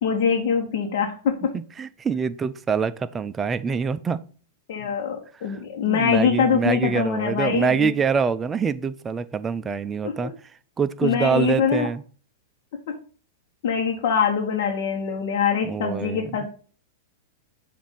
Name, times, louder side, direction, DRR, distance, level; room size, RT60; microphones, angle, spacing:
voice 1, 0.0-1.3 4.7-7.9 10.0-10.1 11.0-11.9 12.9-13.0 13.6-16.6, left 7 dB, 60° left, 0 dB, 1.0 m, -23 dB
voice 2, 1.5-4.2 5.5-5.6 5.9-10.3 10.8-12.0 15.6-16.3, right 6 dB, 20° right, 13 dB, 0.4 m, -25 dB
7.1 x 2.6 x 5.4 m, 0.42 s
hypercardioid pair, 115°, 0 cm